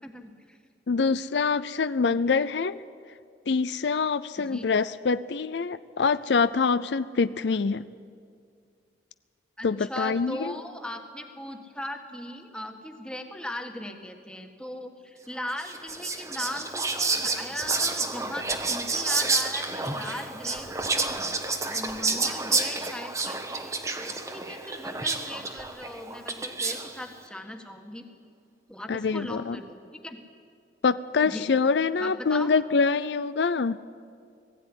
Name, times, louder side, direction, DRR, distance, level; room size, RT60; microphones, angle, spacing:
voice 1, 0.0-0.6 4.4-4.7 7.5-7.6 9.6-21.2 21.7-28.0 28.7-30.2 31.2-31.5 32.0-32.5, left 1 dB, 5° left, 4 dB, 1.5 m, -39 dB
voice 2, 0.9-2.8 3.5-7.8 9.6-10.5 28.9-29.6 30.8-33.8, left 4 dB, 75° left, 14 dB, 0.5 m, -25 dB
Whispering, 15.6-27.0, right 3 dB, 15° right, 1.1 m, -29 dB
20.0 x 15.5 x 9.9 m, 2.3 s
head